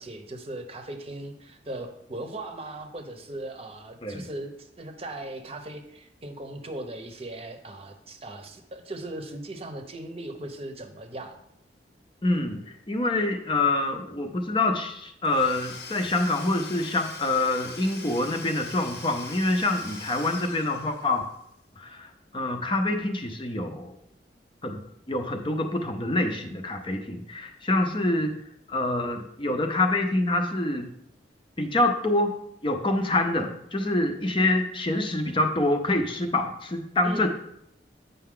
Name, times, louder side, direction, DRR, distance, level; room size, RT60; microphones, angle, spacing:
voice 1, 0.0-11.4 37.0-37.3, right 1 dB, 35° right, 6 dB, 0.8 m, -38 dB
voice 2, 12.2-21.2 21.8-24.0 24.6-24.8 25.1-28.3 28.7-30.9 31.6-32.3 32.6-37.3, left 2 dB, 30° left, 5 dB, 0.6 m, -26 dB
Domestic sounds home sounds / Tools, 15.2-21.4, left 4 dB, 70° left, 0.9 m, -42 dB
8.4 x 5.6 x 3.7 m, 0.77 s
head